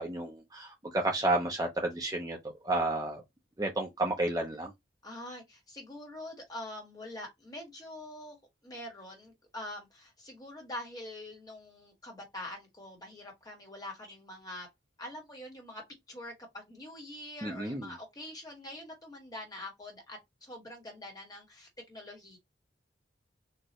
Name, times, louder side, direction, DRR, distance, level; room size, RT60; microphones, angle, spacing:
voice 1, 0.0-2.4 2.6-3.2 3.6-4.7 17.4-17.9, right 2 dB, 20° right, 0.7 m, -31 dB
voice 2, 5.0-8.4 8.6-14.7 15.0-22.4, left 1 dB, 20° left, 1.6 m, -45 dB
4.3 x 2.7 x 3.1 m
head